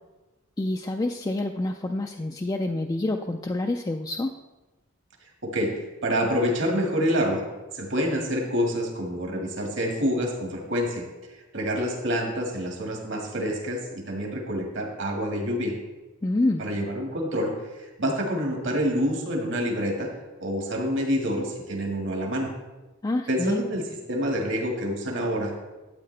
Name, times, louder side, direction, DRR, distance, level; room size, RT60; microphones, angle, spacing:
voice 1, 0.6-4.3 16.2-16.6 23.0-23.6, left 2 dB, 20° left, 3 dB, 0.3 m, -27 dB
voice 2, 5.4-7.4 7.7-11.0 11.5-15.7 16.6-20.1 20.4-22.5 23.3-23.8 24.1-25.5, equal, 60° right, 1 dB, 1.9 m, -27 dB
12.0 x 8.5 x 3.3 m, 1.1 s
head